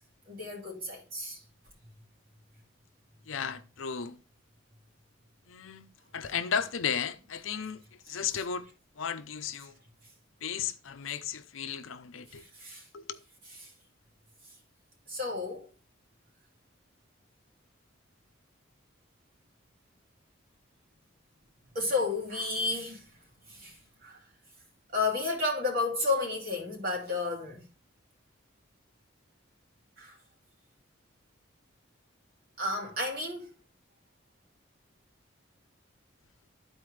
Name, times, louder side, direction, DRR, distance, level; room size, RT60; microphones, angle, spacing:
voice 1, 0.3-1.4 6.2-6.3 12.3-12.9 13.5-13.7 15.1-15.7 21.7-23.1 23.5-24.2 24.9-27.6 30.0-30.2 32.6-33.5, left 3 dB, 45° right, 2.4 m, -32 dB
voice 2, 3.3-4.2 5.5-5.9 6.1-7.8 8.1-8.7 9.0-9.7 10.4-12.4 12.9-13.2, left 7 dB, 75° left, 0.6 m, -34 dB
12.5 x 4.3 x 3.2 m
head